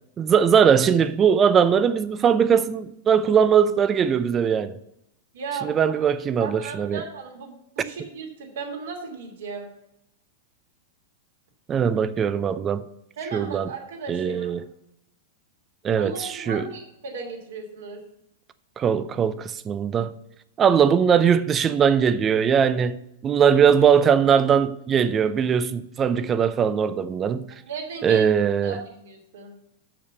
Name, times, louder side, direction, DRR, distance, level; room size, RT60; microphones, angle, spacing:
voice 1, 0.2-4.8 5.6-7.0 11.7-12.8 13.3-13.7 14.1-14.6 15.8-16.7 18.8-20.1 20.6-27.5 28.0-28.8, right 7 dB, 25° right, 0.6 m, -20 dB
voice 2, 5.3-5.9 6.4-9.7 13.2-14.6 16.0-18.0 23.4-23.5 27.7-28.3 28.6-29.5, right 5 dB, 70° right, 2.7 m, -36 dB
6.6 x 5.9 x 7.0 m
hypercardioid pair, 110°, 0 cm